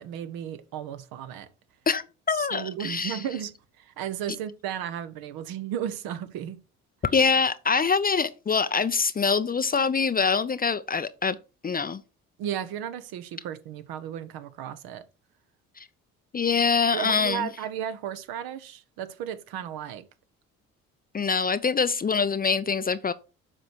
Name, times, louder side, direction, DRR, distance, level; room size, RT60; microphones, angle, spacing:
voice 1, 0.0-1.5 2.3-6.6 12.4-15.0 16.9-20.1, right 9 dB, 60° right, 0.9 m, -34 dB
voice 2, 1.9-3.2 7.1-11.4 11.6-12.0 15.8-15.9 16.3-17.5 21.1-23.1, left 5 dB, 20° left, 0.6 m, -24 dB
7.6 x 5.2 x 4.6 m
figure-of-eight pair, 50°, 42 cm